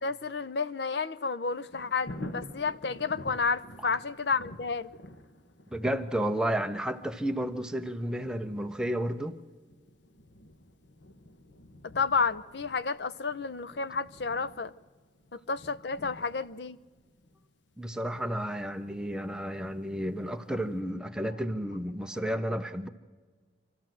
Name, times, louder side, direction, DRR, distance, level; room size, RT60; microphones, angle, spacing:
voice 1, 0.0-4.9 11.8-14.7 15.3-16.8, left 5 dB, 65° left, 0.6 m, -31 dB
Thunder, 1.4-20.2 20.7-20.8, left 1 dB, 80° left, 1.3 m, -49 dB
voice 2, 5.7-9.4 17.8-22.9, right 1 dB, 5° right, 0.8 m, -32 dB
26.0 x 13.5 x 7.7 m
head